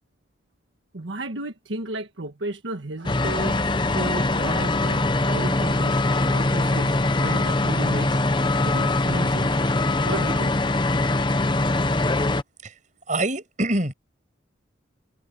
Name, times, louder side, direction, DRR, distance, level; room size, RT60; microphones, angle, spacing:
voice 1, 0.9-3.6 3.9-8.2 8.6-9.5 10.0-10.5, right 2 dB, 80° right, 1.5 m, -33 dB
sound 1, 3.0-12.4, left 2 dB, 25° left, 0.8 m, -22 dB
voice 2, 13.1-13.9, right 1 dB, 40° right, 7.2 m, -25 dB
head